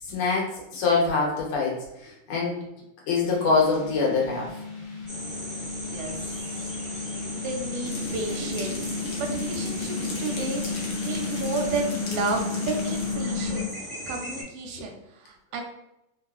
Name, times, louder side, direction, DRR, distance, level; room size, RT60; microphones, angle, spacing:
voice 1, 0.0-2.6 3.1-4.5, left 4 dB, 80° left, -3 dB, 1.9 m, -24 dB
sound 1, 3.2-13.6, left 4 dB, 50° left, 0.9 m, -33 dB
sound 2, 5.1-14.4, equal, 30° right, 0.6 m, -38 dB
voice 2, 5.7-6.7 7.3-10.6 11.0-13.7 14.1-15.6, right 3 dB, 85° right, 2 dB, 1.6 m, -32 dB
sound 3, 7.8-13.1, left 1 dB, 65° left, 1.3 m, -37 dB
4.2 x 2.3 x 2.4 m, 0.88 s
omnidirectional pair, 2.4 m